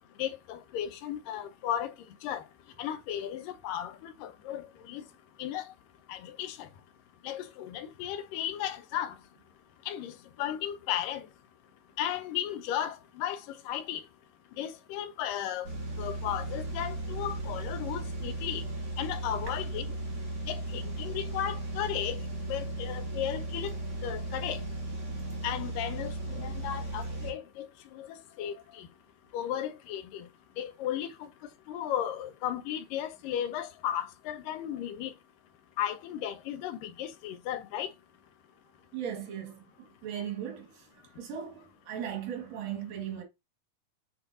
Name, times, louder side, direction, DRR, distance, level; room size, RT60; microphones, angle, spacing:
voice 1, 0.2-1.9 2.2-2.4 2.8-5.1 5.4-5.7 6.1-6.7 7.2-9.2 9.9-11.3 12.0-14.0 14.6-15.7 16.0-18.6 19.0-19.9 20.5-23.7 24.0-24.6 25.4-28.9 29.3-30.3 30.6-31.3 31.7-35.1 35.8-37.9, left 10 dB, 85° left, 2.5 m, -35 dB
sound 1, 15.6-27.3, right 2 dB, 50° right, 4.5 m, -36 dB
voice 2, 38.9-43.2, right 9 dB, 90° right, 3.5 m, -38 dB
8.7 x 4.0 x 2.7 m
omnidirectional pair, 3.8 m